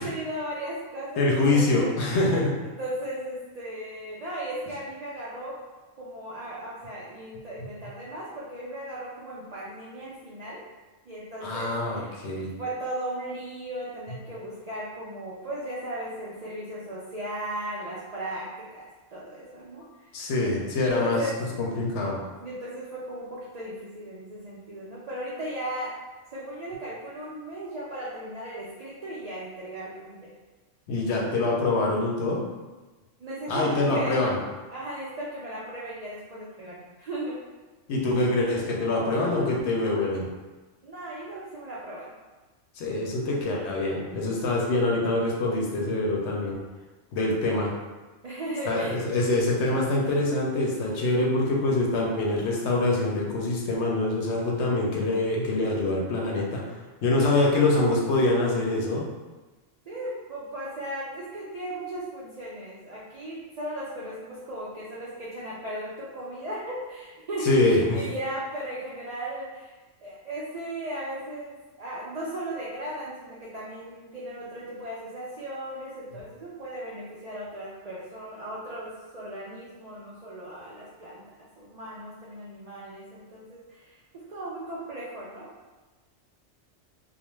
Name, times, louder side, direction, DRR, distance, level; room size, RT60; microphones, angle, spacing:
voice 1, 0.0-2.1 2.8-5.5 6.0-10.6 11.1-12.1 12.6-18.5 18.7-18.8 19.1-19.8 20.7-21.3 22.4-25.9 26.3-30.3 33.2-34.2 34.7-37.4 40.8-42.1 47.4-47.6 48.2-49.0 57.2-57.8 59.9-67.5 67.9-69.7 70.0-81.2 81.6-85.5, right 1 dB, 80° right, -7 dB, 0.3 m, -36 dB
voice 2, 1.2-2.6 11.4-12.5 20.1-21.2 21.6-22.2 30.9-32.4 33.5-34.4 37.9-40.3 42.8-46.6 47.1-47.7 48.7-56.6 57.0-59.1 67.4-68.0, left 2 dB, 70° left, -2 dB, 0.8 m, -25 dB
2.4 x 2.1 x 3.1 m, 1.2 s
omnidirectional pair, 1.3 m